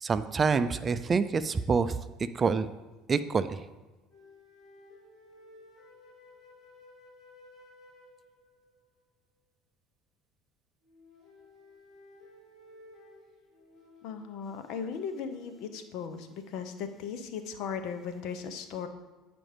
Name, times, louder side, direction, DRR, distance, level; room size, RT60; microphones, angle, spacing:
voice 1, 0.0-2.7 3.1-3.6, right 5 dB, 30° right, 12 dB, 0.4 m, -27 dB
sound 1, 4.1-8.9 10.8-15.9, left 2 dB, 45° left, 3.1 m, -56 dB
voice 2, 14.0-18.9, left 6 dB, 70° left, 9 dB, 0.8 m, -37 dB
9.1 x 5.2 x 5.0 m, 1.2 s
supercardioid pair, 90°, 0 cm